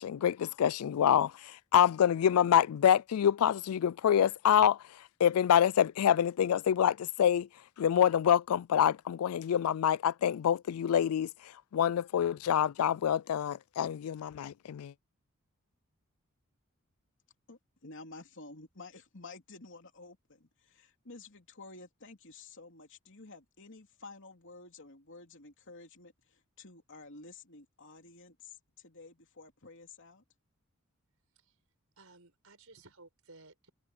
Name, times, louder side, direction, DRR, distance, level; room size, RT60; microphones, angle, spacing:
voice 1, 0.0-7.5 7.8-14.9, left 9 dB, 80° left, 0.3 m, -26 dB
voice 2, 17.5-30.2, left 3 dB, 60° left, 3.1 m, -51 dB
voice 3, 32.0-33.7, right 3 dB, 70° right, 6.0 m, -57 dB
head